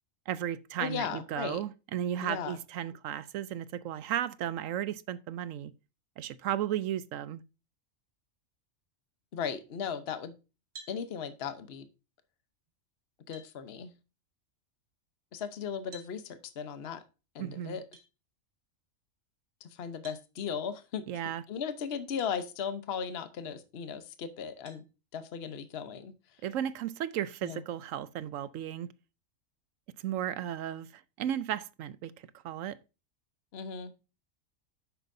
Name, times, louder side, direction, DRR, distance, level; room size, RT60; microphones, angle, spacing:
voice 1, 0.3-5.7 6.2-7.4 17.4-17.8 21.1-21.4 26.4-28.9 30.0-32.1 32.4-32.8, right 10 dB, 70° right, 0.9 m, -34 dB
voice 2, 0.8-1.6 2.2-2.6 9.3-10.3 10.9-11.9 13.3-13.9 15.3-17.0 17.3-17.8 19.7-21.0 21.5-24.8 25.1-26.1 27.4-27.6 33.5-33.9, left 7 dB, 50° left, 1.1 m, -37 dB
sound 1, 10.7-11.0 12.7-12.8 13.3-13.5 15.9-16.1 17.9-18.1 20.0-20.3 22.2-22.3 23.0-23.1 24.7-24.9, right 2 dB, 85° right, 2.3 m, -50 dB
10.5 x 7.9 x 2.6 m
omnidirectional pair, 1.4 m